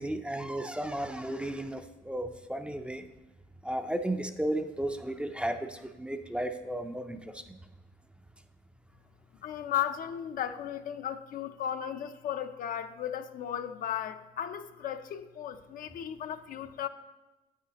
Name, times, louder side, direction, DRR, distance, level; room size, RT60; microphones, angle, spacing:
voice 1, 0.0-3.0 3.6-7.2, right 1 dB, 5° right, 7 dB, 0.5 m, -34 dB
voice 2, 9.4-16.9, left 10 dB, 55° left, 9 dB, 0.5 m, -35 dB
9.8 x 7.8 x 2.9 m, 1.1 s
cardioid pair, 110°, 17 cm